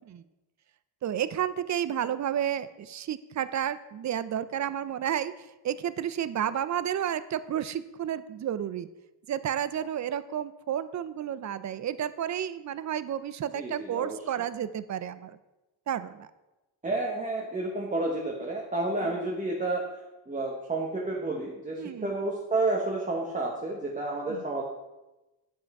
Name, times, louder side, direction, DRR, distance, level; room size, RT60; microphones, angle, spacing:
voice 1, 1.0-5.3 5.6-8.9 9.3-15.4 15.9-16.3 21.8-22.1 24.3-24.5, right 10 dB, 45° right, 14 dB, 0.4 m, -31 dB
voice 2, 13.5-14.2 16.8-19.8 20.3-24.6, right 2 dB, 20° right, -2 dB, 0.9 m, -30 dB
10.0 x 7.8 x 4.7 m, 1.0 s
wide cardioid pair, 180°, 43 cm